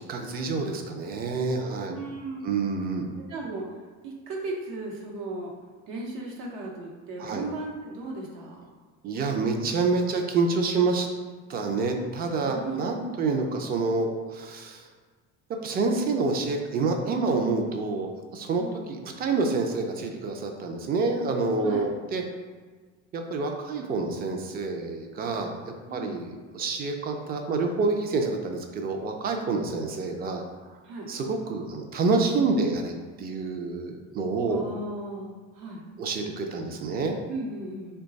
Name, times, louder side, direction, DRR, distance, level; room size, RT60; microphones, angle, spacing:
voice 1, 0.0-1.9 2.4-3.1 7.2-7.4 9.0-11.1 11.5-14.8 15.6-22.2 23.1-25.5 25.9-30.4 31.1-34.7 36.0-37.2, right 3 dB, 30° right, 4 dB, 0.4 m, -27 dB
voice 2, 1.6-2.5 3.3-3.6 4.0-5.5 5.9-8.7 12.5-12.9 18.6-18.9 21.6-21.9 25.9-26.2 30.8-31.1 34.5-35.8 37.3-38.0, right 2 dB, 75° right, -1 dB, 0.9 m, -36 dB
3.0 x 2.2 x 3.9 m, 1.4 s
cardioid pair, 130°, 34 cm